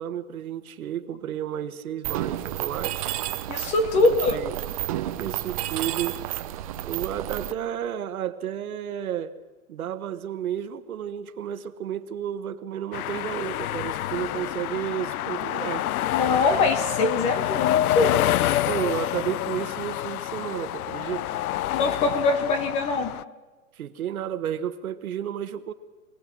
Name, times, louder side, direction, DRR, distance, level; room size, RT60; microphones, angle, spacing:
voice 1, 0.0-3.1 3.9-4.6 5.2-6.2 6.8-9.3 9.7-15.9 18.7-21.4 23.7-25.7, right 10 dB, 80° right, 10 dB, 1.4 m, -32 dB
Mechanisms, 2.0-7.5, right 13 dB, 25° right, 0.6 m, -31 dB
voice 2, 3.5-4.4 16.1-18.2 21.7-23.1, left 3 dB, 15° left, 10 dB, 0.8 m, -23 dB
sound 1, 12.9-23.2, left 13 dB, 80° left, 0.6 m, -27 dB
24.0 x 18.0 x 6.3 m, 1.3 s
hypercardioid pair, 160°, 43 cm